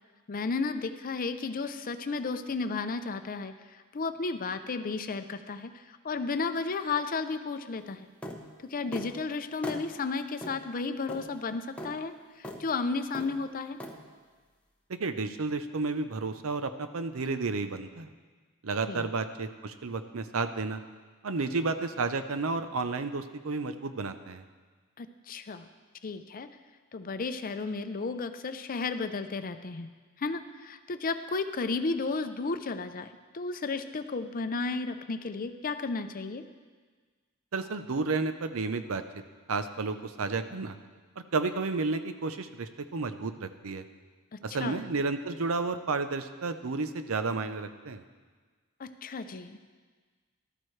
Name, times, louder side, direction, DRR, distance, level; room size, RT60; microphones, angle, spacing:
voice 1, 0.3-8.1 8.6-13.8 18.9-19.1 25.0-25.7 26.0-26.5 26.9-29.9 30.2-36.4 44.3-44.8 48.8-49.6, left 4 dB, 40° left, 10 dB, 0.6 m, -33 dB
sound 1, 8.2-8.4 8.9-9.1 9.6-9.8 10.4-10.6 11.1-11.3 11.8-11.9 12.4-12.6 13.1-13.3 13.8-14.0, equal, 5° left, 0.9 m, -38 dB
voice 2, 14.9-18.1 18.6-20.8 21.2-24.4 37.5-39.0 39.5-40.8 41.3-43.8 44.4-48.0, right 3 dB, 70° right, 10 dB, 0.7 m, -32 dB
13.5 x 12.5 x 3.2 m, 1.4 s
head